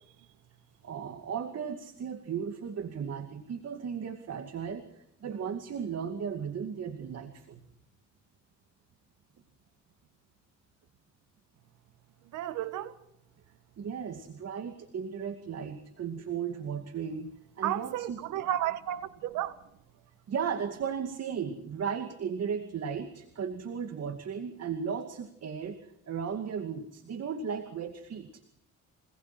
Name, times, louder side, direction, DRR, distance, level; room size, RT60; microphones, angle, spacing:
voice 1, 0.8-7.6 13.8-18.2 20.3-28.4, right 7 dB, 55° right, 2.3 m, -36 dB
voice 2, 12.3-12.9 17.6-19.5, right 12 dB, 90° right, 1.7 m, -32 dB
26.5 x 19.0 x 6.1 m
cardioid pair, 90°, 30 cm